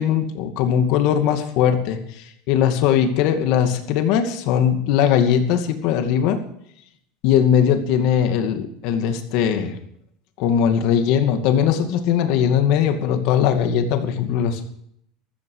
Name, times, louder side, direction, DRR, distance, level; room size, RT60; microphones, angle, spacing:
voice 1, 0.0-2.0 2.5-6.4 7.2-9.8 10.4-14.6, left 8 dB, 55° left, 7 dB, 2.4 m, -19 dB
14.5 x 14.0 x 5.0 m, 0.71 s
supercardioid pair, 155°, 0 cm